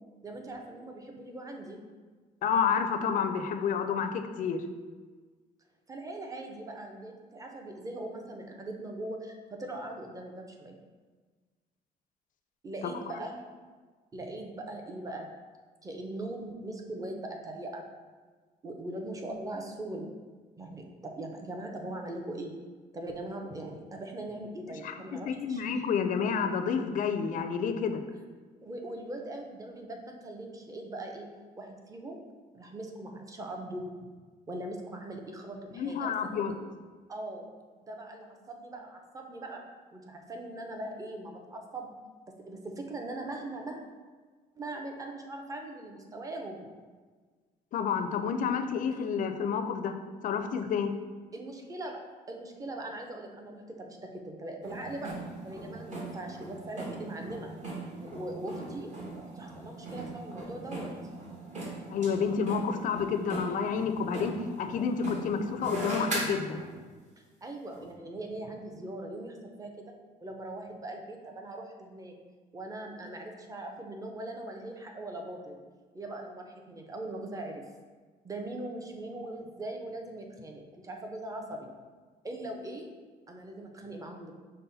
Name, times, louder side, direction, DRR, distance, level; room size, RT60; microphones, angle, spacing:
voice 1, 0.2-1.8 5.9-10.7 12.6-13.5 14.1-15.3 15.8-17.8 18.6-20.1 20.6-22.5 22.9-25.6 28.6-31.3 31.6-32.2 32.5-34.1 34.5-36.6 37.1-37.5 37.9-39.6 39.9-41.9 42.5-43.8 44.6-46.7 51.3-52.0 52.3-55.1 55.4-57.5 57.9-60.9 67.4-69.8 70.2-72.1 72.5-75.6 75.9-77.6 78.2-81.7 82.2-82.9 83.3-84.3, right 1 dB, 20° right, 2 dB, 0.6 m, -40 dB
voice 2, 2.4-4.6 24.8-28.0 35.7-36.5 47.7-50.0 50.2-50.9 61.9-66.6, left 6 dB, 50° left, 8 dB, 0.4 m, -29 dB
sound 1, 54.6-66.8 67.7-67.9, right 2 dB, 45° right, 1.3 m, -40 dB
5.4 x 2.1 x 4.0 m, 1.4 s
cardioid pair, 110°, 17 cm